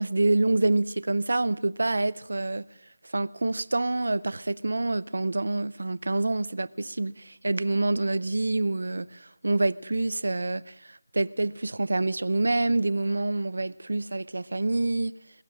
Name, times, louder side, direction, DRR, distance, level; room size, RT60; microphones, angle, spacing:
voice 1, 0.0-2.7 3.1-10.7 11.1-15.1, right 2 dB, 70° right, 0.6 m, -27 dB
21.5 x 7.3 x 8.6 m
figure-of-eight pair, 180°, 0 cm